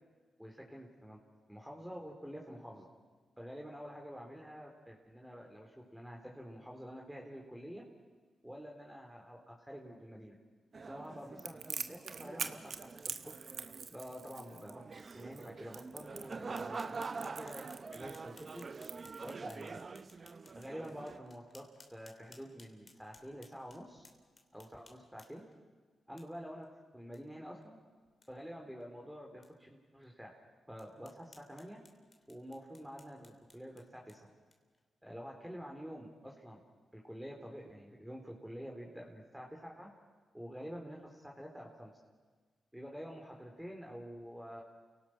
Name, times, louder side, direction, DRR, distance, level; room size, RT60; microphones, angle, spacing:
voice 1, 0.4-1.2 1.5-2.9 3.4-7.8 8.4-10.4 10.9-13.2 13.9-14.8 15.1-17.6 17.9-18.6 19.2-19.8 20.5-21.6 21.9-24.0 24.5-25.4 26.1-26.7 26.9-27.8 28.3-30.3 30.7-31.8 32.3-34.3 35.0-36.6 36.9-39.9 40.3-41.9 42.7-44.6, equal, 5° right, -1 dB, 3.8 m, -48 dB
sound 1, 10.7-21.2, right 4 dB, 50° right, 0.9 m, -46 dB
Crackle, 11.4-19.6, right 6 dB, 70° right, 1.2 m, -44 dB
sound 2, 16.2-25.5 26.2-26.3 26.6-26.7 27.1-27.2 27.6-27.7 28.1-28.3 28.8-28.9 29.4-29.5 30.0-30.1 30.8-34.8, left 3 dB, 45° left, 3.0 m, -62 dB
29.0 x 18.0 x 6.2 m, 1.4 s
cardioid pair, 55°, 0 cm